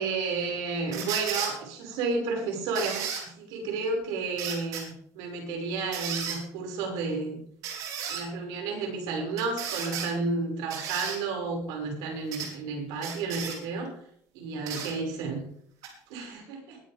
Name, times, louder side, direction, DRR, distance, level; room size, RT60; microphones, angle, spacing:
voice 1, 0.0-7.4 8.1-14.0 14.3-15.4 16.1-16.8, right 4 dB, 70° right, 1 dB, 5.9 m, -32 dB
sound 1, 0.9-1.5 2.8-3.2 4.4-4.8 5.9-6.4 7.6-8.2 9.4-10.1 10.7-11.2 12.3-12.5 13.0-13.6 14.7-14.9 15.8-15.9, right 7 dB, 55° right, 4.5 m, -34 dB
21.0 x 10.5 x 3.5 m, 0.64 s
cardioid pair, 175°, 7 cm